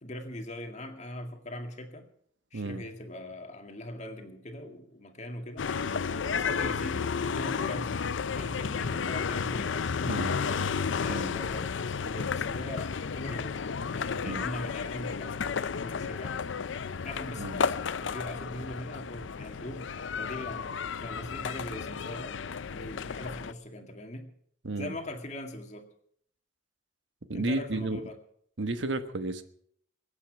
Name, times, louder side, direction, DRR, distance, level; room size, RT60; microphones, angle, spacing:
voice 1, 0.0-2.1 2.5-5.7 6.1-10.6 10.9-16.5 17.0-19.9 20.2-24.3 24.8-25.9 27.3-28.2, left 1 dB, 40° left, 5 dB, 2.1 m, -41 dB
voice 2, 2.5-2.8 10.0-10.4 11.1-11.3 14.2-14.5 17.4-17.6 24.6-24.9 27.3-28.0 28.6-29.4, right 2 dB, 80° right, 9 dB, 1.3 m, -32 dB
sound 1, 5.6-23.5, left 6 dB, 90° left, 0.5 m, -32 dB
23.0 x 8.9 x 6.0 m, 0.64 s
head